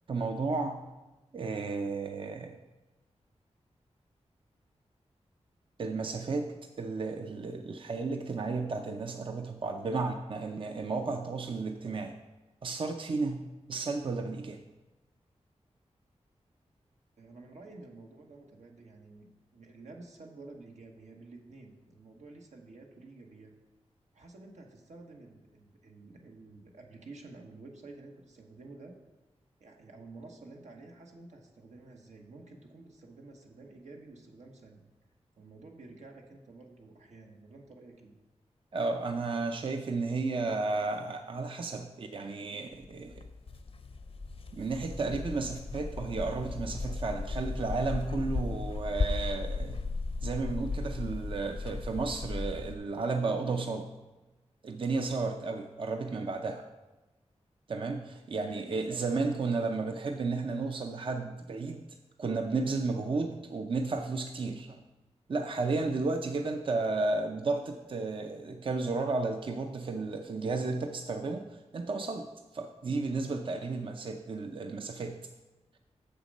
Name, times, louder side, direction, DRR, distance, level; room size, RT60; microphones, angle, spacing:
voice 1, 0.1-0.8 1.3-2.6 5.8-12.2 12.6-14.6 38.7-43.3 44.5-49.9 50.2-53.9 54.6-56.6 57.7-61.8 62.2-64.8 65.3-75.2, right 3 dB, 50° right, 5 dB, 0.5 m, -33 dB
voice 2, 17.2-19.3 19.5-23.5 24.1-29.0 29.6-34.8 35.4-38.1 56.0-56.3 58.3-59.1, right 3 dB, 85° right, 1 dB, 1.3 m, -51 dB
sound 1, 42.7-52.8, left 3 dB, 55° left, 0.6 m, -36 dB
7.3 x 6.8 x 5.3 m, 1.1 s
wide cardioid pair, 110°, 12 cm